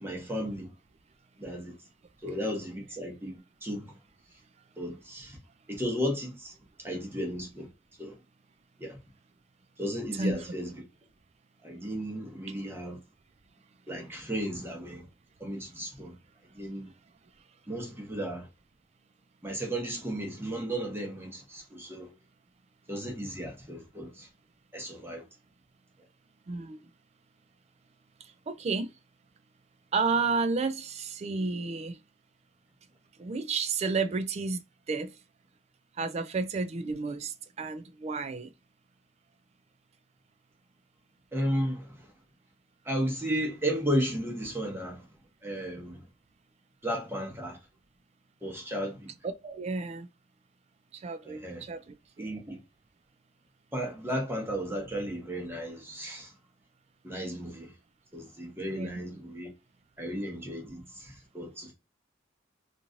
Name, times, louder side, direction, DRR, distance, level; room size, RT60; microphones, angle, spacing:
voice 1, 0.0-0.7 1.4-1.7 2.2-3.9 4.8-5.4 5.7-6.5 6.8-7.7 8.0-8.1 8.8-9.0 9.8-10.7 11.6-13.0 13.9-15.0 15.4-16.1 16.5-16.9 17.7-18.5 19.4-22.1 22.9-24.3 24.7-25.2 41.3-42.1 42.8-45.0 45.4-46.0 46.8-47.6 48.4-49.1 51.2-51.6 52.2-52.6 53.7-56.3 57.0-57.7 58.1-59.5 60.0-61.7, equal, 15° right, 0.9 m, -34 dB
voice 2, 10.1-10.4 26.5-26.8 28.5-28.9 29.9-32.0 33.2-34.6 34.9-35.1 36.0-38.5 49.2-50.1 50.9-52.3 58.7-58.9, right 4 dB, 35° right, 0.3 m, -31 dB
3.0 x 2.5 x 2.5 m
head